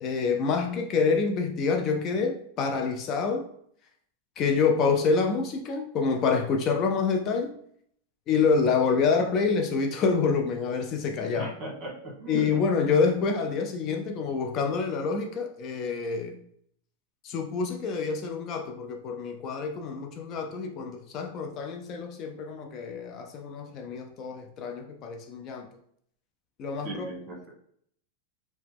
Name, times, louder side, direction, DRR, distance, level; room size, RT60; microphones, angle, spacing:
voice 1, 0.0-3.4 4.4-7.5 8.3-11.5 12.3-16.4 17.2-25.7 26.6-27.1, left 5 dB, 35° left, 4 dB, 0.3 m, -27 dB
voice 2, 11.3-12.5 26.8-27.5, right 2 dB, 30° right, -3 dB, 1.2 m, -37 dB
2.8 x 2.1 x 3.3 m, 0.66 s
supercardioid pair, 135°, 0 cm